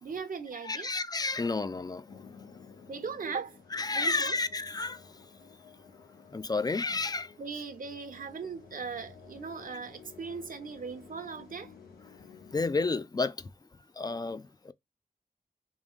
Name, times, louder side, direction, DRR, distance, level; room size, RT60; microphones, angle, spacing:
voice 1, 0.0-0.9 2.9-3.6 3.9-4.4 7.4-11.7, right 5 dB, 60° right, 0.7 m, -39 dB
voice 2, 0.6-2.1 3.7-5.0 6.3-7.3 12.5-13.5 14.0-14.7, left 3 dB, 25° left, 0.3 m, -31 dB
sound 1, 2.1-13.0, left 6 dB, 90° left, 0.7 m, -53 dB
3.6 x 2.6 x 3.5 m
cardioid pair, 60°, 16 cm